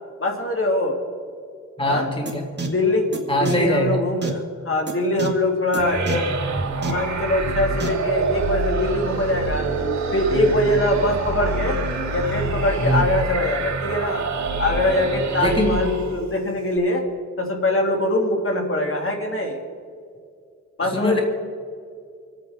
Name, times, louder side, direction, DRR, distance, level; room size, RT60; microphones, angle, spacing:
voice 1, 0.2-1.0 1.9-2.1 2.6-6.3 6.8-9.7 10.1-11.8 12.1-14.2 14.6-17.0 17.4-19.6 20.8-21.2, left 1 dB, 45° left, 2 dB, 2.2 m, -23 dB
voice 2, 1.8-2.4 3.3-4.0 12.8-13.0 15.4-15.8 20.8-21.2, left 1 dB, 15° left, 1 dB, 1.9 m, -22 dB
sound 1, 2.3-2.4 2.6-2.7 3.1-3.2 3.5-3.6 4.2-4.3 4.9-5.0 5.2-5.3 5.7-5.8 6.1-6.2 6.8-6.9 7.8-7.9, right 3 dB, 35° right, 1.8 m, -27 dB
sound 2, 5.8-16.3, right 3 dB, 65° right, 3.0 m, -26 dB
26.5 x 9.0 x 3.6 m, 2.3 s
cardioid pair, 80°, 30 cm